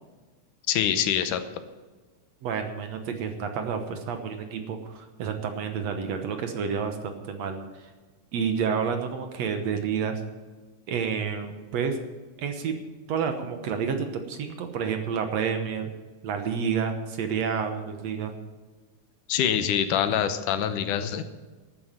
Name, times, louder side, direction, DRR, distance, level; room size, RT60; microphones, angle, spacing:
voice 1, 0.7-1.4 19.3-21.2, left 9 dB, 80° left, 10 dB, 2.5 m, -25 dB
voice 2, 2.4-7.9 8.3-10.2 10.9-12.0 12.4-12.8 13.1-15.9 16.2-18.3, right 6 dB, 65° right, 6 dB, 2.1 m, -29 dB
12.5 x 9.4 x 7.5 m, 1.3 s
omnidirectional pair, 3.6 m